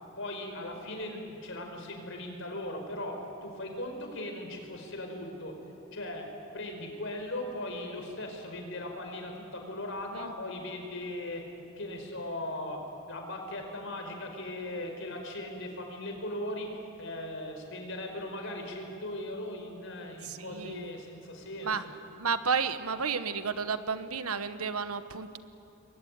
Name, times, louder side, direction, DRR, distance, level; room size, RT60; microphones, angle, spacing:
voice 1, 0.2-5.5 5.9-6.3 6.5-11.4 11.8-12.8 13.1-16.7 17.0-21.7, left 1 dB, 60° left, 3 dB, 5.1 m, -38 dB
voice 2, 10.1-10.6 20.2-20.9 21.6-21.8 22.2-25.4, right 5 dB, 85° right, 11 dB, 1.4 m, -32 dB
27.5 x 22.5 x 9.5 m, 2.8 s
head